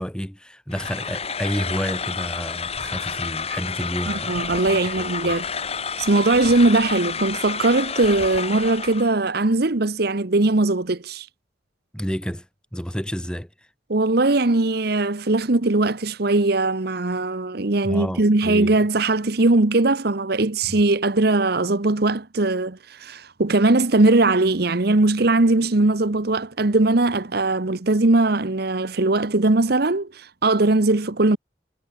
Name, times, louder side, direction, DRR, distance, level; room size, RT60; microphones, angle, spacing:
voice 1, 0.0-5.4 11.9-12.5 12.7-13.5 17.8-18.8 20.7-20.8, equal, 5° left, 2.6 m, -30 dB
sound 1, 0.7-9.1, left 5 dB, 35° left, 6.1 m, -30 dB
voice 2, 4.1-5.4 6.0-11.3 13.9-31.4, right 2 dB, 55° right, 1.1 m, -20 dB
head